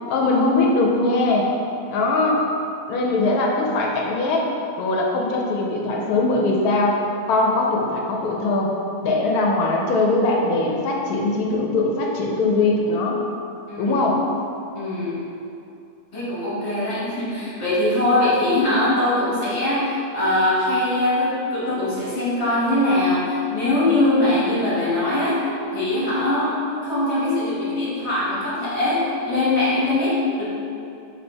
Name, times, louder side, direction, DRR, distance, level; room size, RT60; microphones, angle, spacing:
voice 1, 0.1-1.5 1.9-2.4 2.9-4.5 4.8-7.0 7.3-8.7 9.0-13.2 13.8-14.2, left 2 dB, 85° left, -1 dB, 1.1 m, -21 dB
voice 2, 13.7-14.0 14.7-15.2 16.1-30.4, left 1 dB, 50° left, -8 dB, 1.4 m, -22 dB
3.3 x 3.0 x 4.3 m, 2.6 s
omnidirectional pair, 1.6 m